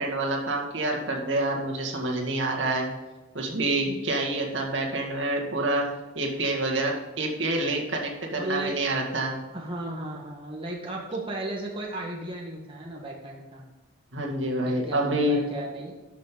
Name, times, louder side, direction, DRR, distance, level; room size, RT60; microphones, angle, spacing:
voice 1, 0.0-2.9 3.3-5.8 6.2-9.4 14.1-15.4, right 2 dB, 70° right, -1 dB, 2.1 m, -27 dB
voice 2, 8.3-8.8 9.5-13.6 14.7-15.9, right 1 dB, 25° right, -2 dB, 1.4 m, -35 dB
12.0 x 6.5 x 3.9 m, 1.2 s
head